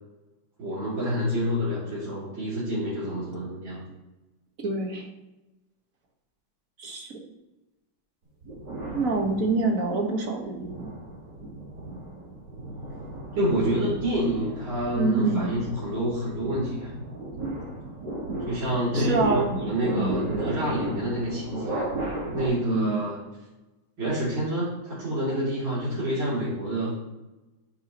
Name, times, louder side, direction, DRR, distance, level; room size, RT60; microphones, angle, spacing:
voice 1, 0.6-3.9 13.4-16.9 18.5-21.9 22.3-23.2 24.0-27.1, equal, 90° right, -11 dB, 3.8 m, -28 dB
voice 2, 4.6-5.1 6.8-7.1 8.9-10.9 14.9-15.5 18.9-20.2 22.7-23.1, right 3 dB, 50° right, 1 dB, 1.8 m, -26 dB
sound 1, 8.4-9.8 10.4-22.5, right 1 dB, 70° right, 3.9 m, -35 dB
10.5 x 9.5 x 3.0 m, 1.0 s
omnidirectional pair, 2.0 m